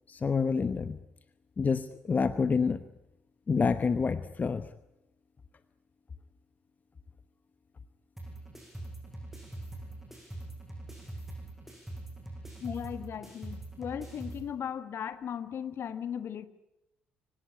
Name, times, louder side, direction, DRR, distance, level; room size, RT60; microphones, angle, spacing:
voice 1, 0.1-1.0 1.6-2.8 3.5-4.7, left 5 dB, 30° left, 13 dB, 1.0 m, -28 dB
sound 1, 8.2-14.4, right 2 dB, 5° right, 7.9 m, -43 dB
voice 2, 12.6-16.5, left 8 dB, 50° left, 13 dB, 1.4 m, -37 dB
25.0 x 18.0 x 9.8 m, 0.90 s
figure-of-eight pair, 50°, 5 cm